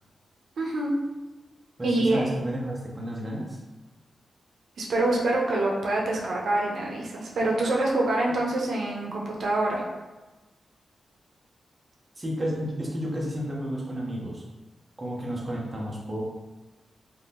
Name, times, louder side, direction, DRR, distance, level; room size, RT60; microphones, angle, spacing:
voice 1, 0.6-0.9 1.8-2.3 4.8-9.8, right 2 dB, 70° right, -2 dB, 0.6 m, -25 dB
voice 2, 1.8-3.6 12.2-14.4 15.0-16.2, equal, 20° right, -3 dB, 0.5 m, -31 dB
2.7 x 2.5 x 3.4 m, 1.1 s
wide cardioid pair, 165°, 0 cm